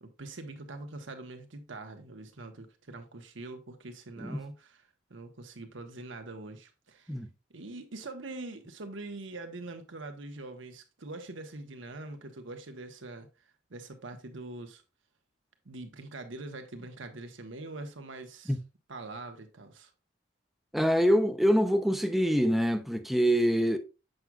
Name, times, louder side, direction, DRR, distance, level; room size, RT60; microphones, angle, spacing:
voice 1, 0.0-4.8 5.1-7.1 7.5-13.3 13.7-14.8 15.6-18.6 18.9-19.9, right 2 dB, 85° right, 1.1 m, -43 dB
voice 2, 20.7-23.8, equal, ahead, 0.5 m, -25 dB
7.7 x 6.0 x 2.3 m
head